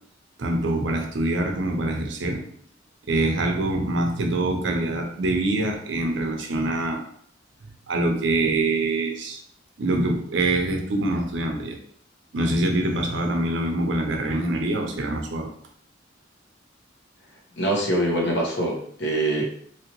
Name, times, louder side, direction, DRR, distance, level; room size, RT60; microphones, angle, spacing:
voice 1, 0.4-2.4 3.1-7.0 7.9-9.4 9.8-11.8 12.3-15.5, right 2 dB, 65° right, 3 dB, 0.6 m, -24 dB
voice 2, 17.6-19.4, right 1 dB, 60° left, -1 dB, 0.9 m, -24 dB
2.9 x 2.8 x 2.9 m, 0.62 s
head